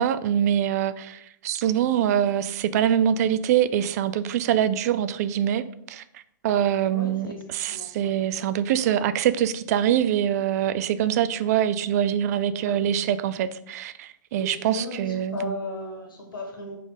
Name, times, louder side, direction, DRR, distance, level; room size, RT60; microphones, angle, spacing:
voice 1, 0.0-15.5, right 10 dB, 50° right, 14 dB, 0.4 m, -24 dB
voice 2, 6.9-8.2 12.6-12.8 14.3-16.8, left 2 dB, 90° left, 1 dB, 1.9 m, -36 dB
5.2 x 4.3 x 4.9 m, 0.73 s
hypercardioid pair, 140°, 11 cm